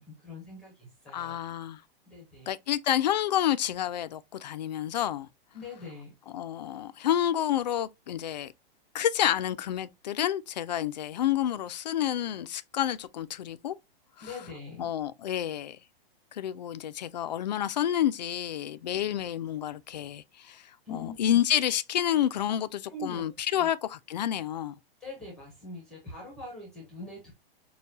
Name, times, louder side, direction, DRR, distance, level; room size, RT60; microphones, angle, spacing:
voice 1, 0.0-1.4 2.1-2.5 5.5-6.1 14.2-14.9 20.9-21.4 22.9-23.7 25.0-27.3, left 2 dB, ahead, 0.7 m, -43 dB
voice 2, 1.1-1.8 2.5-5.3 6.3-8.5 8.9-13.8 14.2-14.4 14.8-15.8 16.3-24.8, left 11 dB, 45° left, 0.4 m, -29 dB
6.5 x 2.2 x 2.7 m
hypercardioid pair, 170°, 30 cm